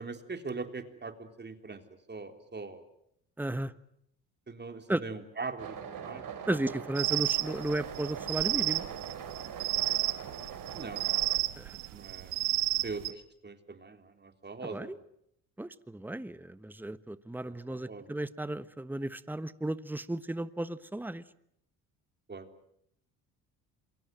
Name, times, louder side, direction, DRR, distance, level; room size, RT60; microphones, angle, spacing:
voice 1, 0.0-1.8 2.1-2.8 4.5-6.6 10.7-11.0 11.9-12.3 12.8-14.9 17.4-18.1 22.3-22.5, right 4 dB, 25° right, 3.7 m, -41 dB
voice 2, 3.4-3.7 4.9-5.0 6.5-8.8 11.6-11.8 14.6-15.0 15.6-21.2, right 1 dB, 5° right, 1.3 m, -34 dB
sound 1, 5.6-11.4, right 7 dB, 55° right, 4.5 m, -42 dB
sound 2, 7.0-13.1, right 20 dB, 80° right, 1.4 m, -31 dB
27.5 x 23.5 x 7.8 m
hypercardioid pair, 65°, 39 cm